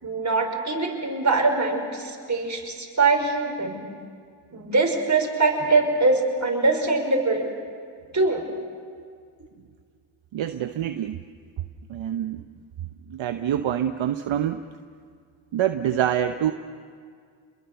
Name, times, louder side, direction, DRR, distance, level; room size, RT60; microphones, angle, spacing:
voice 1, 0.0-3.9 4.5-7.5 8.1-8.4, right 3 dB, 35° right, 2 dB, 5.5 m, -23 dB
voice 2, 10.3-11.2 11.9-12.4 13.1-14.6 15.5-16.5, right 10 dB, 65° right, 8 dB, 1.0 m, -26 dB
29.0 x 22.0 x 6.9 m, 2.1 s
supercardioid pair, 45°, 49 cm